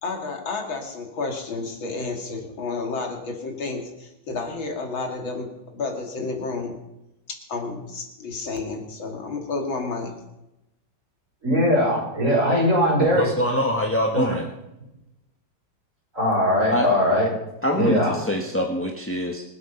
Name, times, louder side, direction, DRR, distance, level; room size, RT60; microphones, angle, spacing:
voice 1, 0.0-5.5 5.7-6.7 7.3-10.1, left 3 dB, 85° left, 2 dB, 3.2 m, -31 dB
voice 2, 11.4-13.3 14.1-14.3 16.1-17.3 17.7-18.2, equal, 40° right, -3 dB, 6.4 m, -20 dB
voice 3, 13.1-14.5 16.7-16.9 17.6-19.4, left 1 dB, 10° left, 2 dB, 0.9 m, -24 dB
25.5 x 8.6 x 5.8 m, 0.93 s
omnidirectional pair, 2.1 m